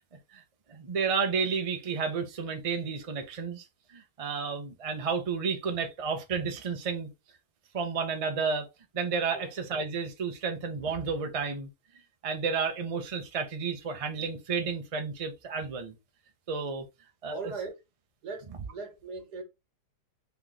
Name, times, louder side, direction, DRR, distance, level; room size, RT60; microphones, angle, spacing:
voice 1, 0.7-3.7 3.9-7.1 7.7-8.7 8.9-11.7 12.2-15.9 16.5-16.8 17.2-17.4, right 5 dB, 35° right, 0.5 m, -31 dB
voice 2, 17.3-17.8 18.2-19.4, right 4 dB, 80° right, 1.7 m, -39 dB
3.4 x 3.0 x 3.8 m
omnidirectional pair, 1.7 m